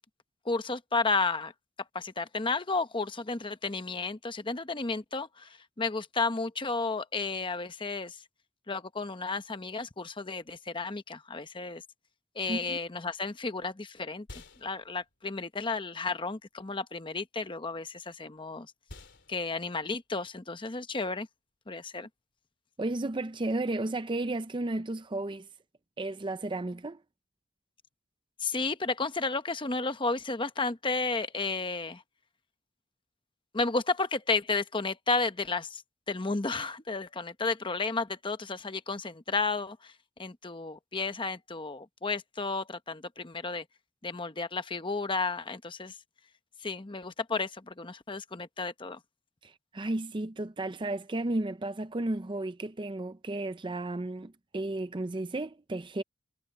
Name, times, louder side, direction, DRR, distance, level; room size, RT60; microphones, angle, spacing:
voice 1, 0.4-1.5 1.9-8.2 8.7-11.8 12.3-14.3 14.6-18.7 19.3-21.3 21.7-22.1 28.4-32.0 33.5-35.8 36.1-39.9 40.2-43.6 44.0-46.0 46.6-49.0, left 3 dB, 25° left, 0.9 m, -32 dB
voice 2, 12.5-12.8 22.8-25.5 26.0-27.0 49.4-56.0, right 2 dB, 25° right, 0.5 m, -33 dB
sound 1, 13.2-22.5, left 2 dB, 60° left, 3.3 m, -56 dB
head